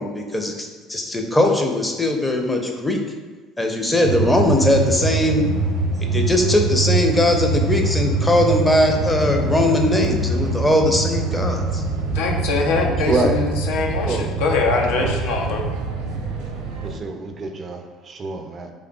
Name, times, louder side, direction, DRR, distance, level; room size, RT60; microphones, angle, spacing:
voice 1, 0.0-3.0 3.6-5.4 6.1-11.8, left 1 dB, 15° left, 2 dB, 0.6 m, -20 dB
sound 1, 4.0-16.9, right 3 dB, 70° right, 0.7 m, -24 dB
voice 2, 12.1-15.7, left 3 dB, 70° left, 1 dB, 0.4 m, -23 dB
voice 3, 16.8-18.7, right 3 dB, 40° right, 4 dB, 0.4 m, -26 dB
3.7 x 3.4 x 2.3 m, 1.4 s
hypercardioid pair, 60°, 0 cm